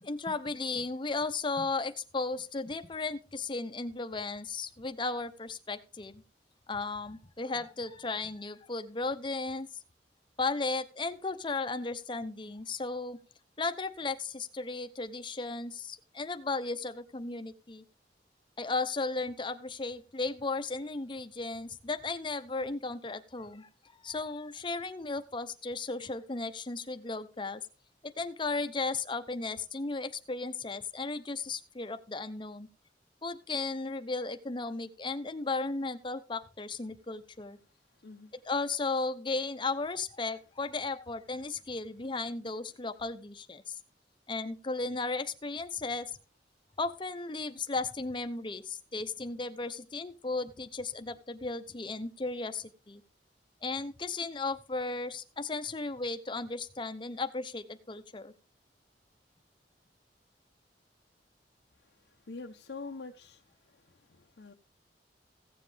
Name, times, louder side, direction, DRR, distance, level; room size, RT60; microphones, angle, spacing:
voice 1, 0.0-6.2 6.7-9.7 10.4-13.2 13.6-17.8 18.6-27.6 28.0-32.7 33.2-37.6 38.4-43.8 44.3-46.1 46.8-53.0 53.6-58.3, left 3 dB, 30° left, 0.8 m, -35 dB
voice 2, 62.0-63.4 63.7-64.5, left 3 dB, 75° left, 0.7 m, -45 dB
16.0 x 7.5 x 3.4 m
head